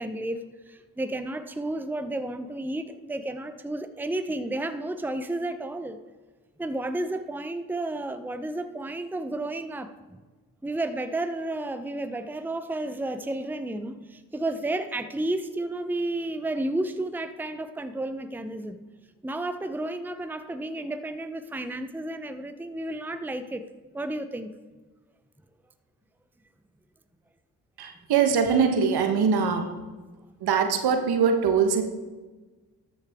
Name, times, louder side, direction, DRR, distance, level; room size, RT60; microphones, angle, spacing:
voice 1, 0.0-6.0 6.6-10.2 10.6-18.8 19.2-23.7 23.9-24.5, right 1 dB, 5° right, 10 dB, 0.7 m, -32 dB
voice 2, 27.8-29.7 30.4-31.8, right 6 dB, 70° right, 6 dB, 1.2 m, -22 dB
13.0 x 6.8 x 3.6 m, 1.3 s
supercardioid pair, 45°, 39 cm